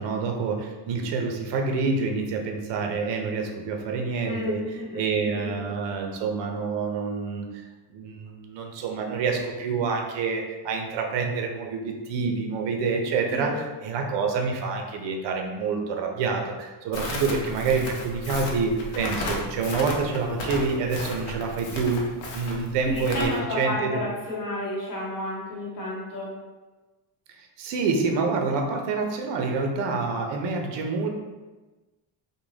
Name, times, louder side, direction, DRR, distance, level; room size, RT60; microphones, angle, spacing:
voice 1, 0.0-4.6 4.9-7.5 7.9-22.0 22.3-24.0 27.4-31.1, right 4 dB, 60° right, 3 dB, 0.5 m, -27 dB
voice 2, 4.2-5.6 13.3-13.5 22.8-26.4, left 1 dB, 40° left, -4 dB, 0.8 m, -31 dB
Crackle, 16.9-23.3, left 2 dB, 65° left, 0.7 m, -34 dB
2.5 x 2.1 x 3.1 m, 1.2 s
cardioid pair, 160°, 50 cm